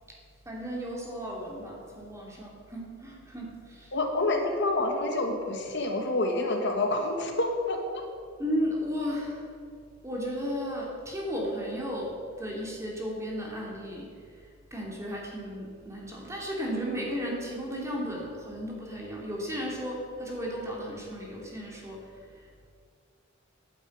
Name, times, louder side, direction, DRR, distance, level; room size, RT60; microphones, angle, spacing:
voice 1, 0.5-3.9 8.4-9.4 10.0-12.1 12.4-14.1 14.7-22.0, equal, 15° right, -2 dB, 3.1 m, -34 dB
voice 2, 3.9-8.0, left 2 dB, 60° left, 3 dB, 1.6 m, -28 dB
11.0 x 9.5 x 8.6 m, 2.2 s
head